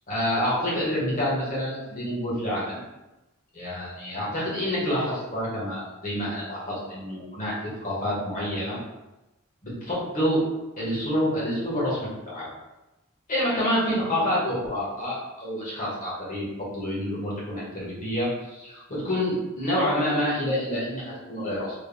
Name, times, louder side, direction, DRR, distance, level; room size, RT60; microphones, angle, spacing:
voice 1, 0.1-2.8 3.5-8.8 9.6-10.4 10.8-12.0 12.2-12.5 13.3-21.7, equal, 40° left, -7 dB, 1.3 m, -28 dB
3.5 x 3.3 x 2.3 m, 1.0 s
head